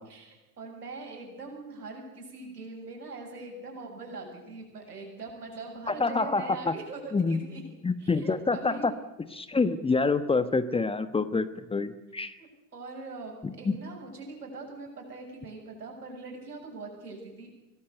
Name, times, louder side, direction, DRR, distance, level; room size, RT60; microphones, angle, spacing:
voice 1, 0.1-7.6 8.0-8.9 12.4-17.5, right 3 dB, 80° right, 2 dB, 7.6 m, -42 dB
voice 2, 5.9-6.7 7.1-7.4 7.8-8.9 9.3-12.4 13.4-13.8, left 4 dB, 10° left, 12 dB, 1.2 m, -27 dB
25.0 x 18.5 x 8.0 m, 0.96 s
figure-of-eight pair, 85°, 46 cm